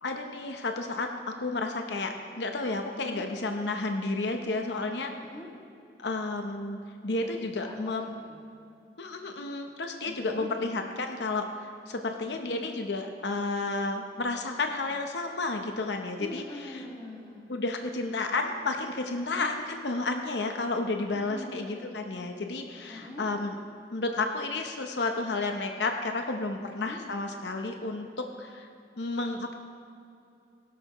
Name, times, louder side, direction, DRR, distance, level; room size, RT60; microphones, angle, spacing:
voice 1, 0.0-5.1 6.0-8.1 9.0-16.8 17.5-23.5 23.9-28.7 29.0-29.5, left 3 dB, 80° left, 4 dB, 0.8 m, -32 dB
voice 2, 2.9-3.2 5.2-5.5 7.2-8.4 10.0-10.5 12.3-12.7 16.2-17.5 19.1-19.5 21.3-21.8 22.9-23.3 26.6-27.0, left 1 dB, 25° left, -2 dB, 2.0 m, -43 dB
17.0 x 12.0 x 3.0 m, 2.6 s
head